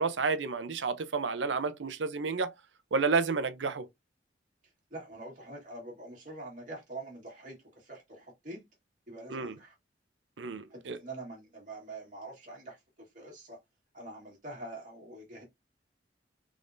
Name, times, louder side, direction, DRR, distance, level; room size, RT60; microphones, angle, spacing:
voice 1, 0.0-2.5 2.9-3.9 9.3-9.5 10.4-11.0, right 4 dB, 90° right, 0.6 m, -30 dB
voice 2, 4.9-8.6 9.1-9.7 10.7-13.6 13.9-15.4, right 2 dB, 45° right, 1.6 m, -45 dB
3.6 x 3.5 x 2.6 m
head